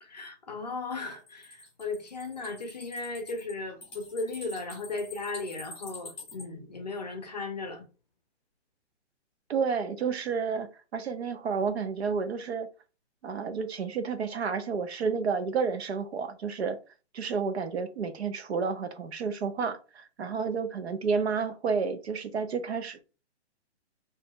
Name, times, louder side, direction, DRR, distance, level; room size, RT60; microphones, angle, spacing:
voice 1, 0.0-7.9, left 3 dB, 35° left, 0.5 m, -36 dB
sound 1, 0.9-6.4, left 3 dB, 5° left, 0.9 m, -46 dB
voice 2, 9.5-12.7 13.2-16.8 17.1-23.2, right 5 dB, 65° right, 0.7 m, -30 dB
2.7 x 2.4 x 3.5 m
hypercardioid pair, 175°, 35 cm